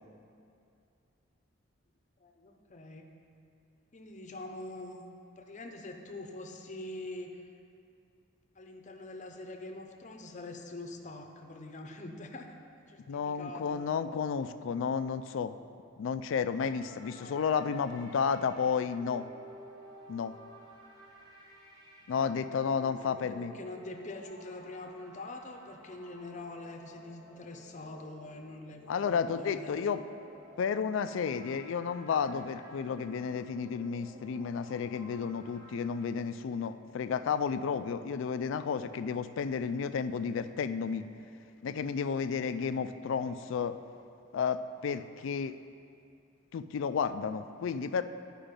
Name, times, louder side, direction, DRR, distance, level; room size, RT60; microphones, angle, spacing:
voice 1, 2.2-3.1 3.9-5.0 5.4-7.4 8.5-12.5 12.9-13.8 17.2-17.7 23.0-29.9, left 2 dB, 40° left, 3 dB, 0.7 m, -44 dB
voice 2, 13.1-15.5 16.0-19.3 20.1-20.3 22.1-23.5 28.9-30.0 30.6-41.1 41.6-43.8 44.3-45.6 46.5-48.0, left 6 dB, 70° left, 11 dB, 0.3 m, -32 dB
sound 1, 16.6-35.8, equal, 25° right, 1.4 m, -54 dB
10.5 x 4.9 x 5.2 m, 2.5 s
head